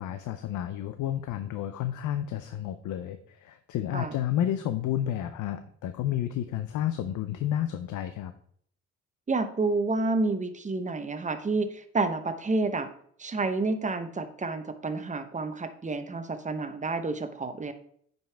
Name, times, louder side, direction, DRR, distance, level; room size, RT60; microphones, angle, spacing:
voice 1, 0.0-8.3, left 11 dB, 80° left, 10 dB, 0.6 m, -31 dB
voice 2, 9.3-12.9 13.2-17.7, right 3 dB, 25° right, 9 dB, 0.9 m, -29 dB
9.0 x 5.4 x 3.4 m, 0.62 s
cardioid pair, 90°, 30 cm